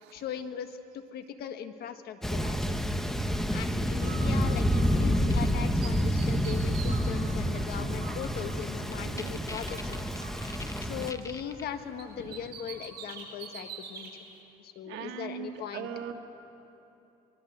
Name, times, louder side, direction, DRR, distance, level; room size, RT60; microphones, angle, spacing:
voice 1, 0.1-2.8 3.5-10.1 10.8-14.1 14.6-15.9, left 8 dB, 70° left, 8 dB, 1.6 m, -39 dB
Thunder, 2.2-11.1, equal, ahead, 1.4 m, -28 dB
Bird, 3.9-5.5 5.8-9.3 9.6-11.7 12.0-14.1, right 5 dB, 65° right, 7.7 m, -46 dB
sound 1, 5.3-5.5 6.2-6.5 8.2-8.3 8.6-8.7 8.9-11.6, left 3 dB, 20° left, 1.0 m, -43 dB
voice 2, 9.0-9.4 12.2-12.4 14.8-16.1, right 9 dB, 90° right, 4 dB, 2.0 m, -40 dB
25.0 x 22.5 x 8.1 m, 3.0 s
cardioid pair, 110°, 17 cm